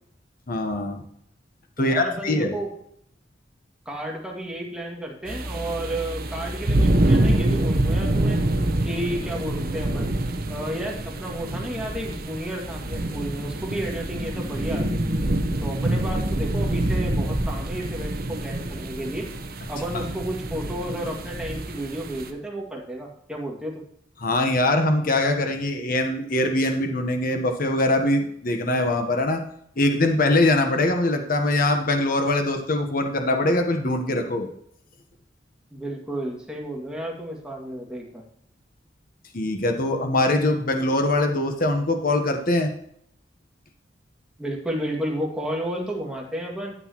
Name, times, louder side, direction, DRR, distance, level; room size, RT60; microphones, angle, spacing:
voice 1, 0.5-1.0 1.8-2.5 19.9-20.0 24.2-29.4 29.8-34.5 39.3-42.7, left 2 dB, 50° left, 5 dB, 1.1 m, -22 dB
voice 2, 1.8-2.7 3.9-8.4 8.8-10.1 10.5-15.1 15.6-19.3 19.7-23.8 35.7-38.2 44.4-46.8, right 1 dB, 5° right, -1 dB, 2.1 m, -32 dB
sound 1, 5.3-22.3, right 1 dB, 55° right, 1.1 m, -26 dB
12.5 x 8.1 x 3.0 m, 0.70 s
head